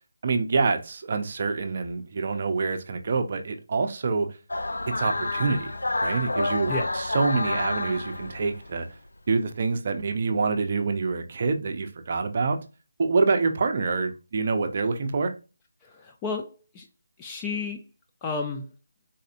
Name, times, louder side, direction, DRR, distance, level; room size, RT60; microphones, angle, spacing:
voice 1, 0.2-4.3 4.9-5.7 6.0-8.9 9.3-12.6 13.0-15.3, right 4 dB, 40° right, 0.5 m, -26 dB
sound 1, 4.5-8.8, left 2 dB, 90° left, 0.4 m, -29 dB
voice 2, 15.8-16.9 17.2-17.8 18.2-18.7, left 4 dB, 15° left, 0.3 m, -32 dB
4.1 x 2.6 x 2.5 m
figure-of-eight pair, 170°, 0 cm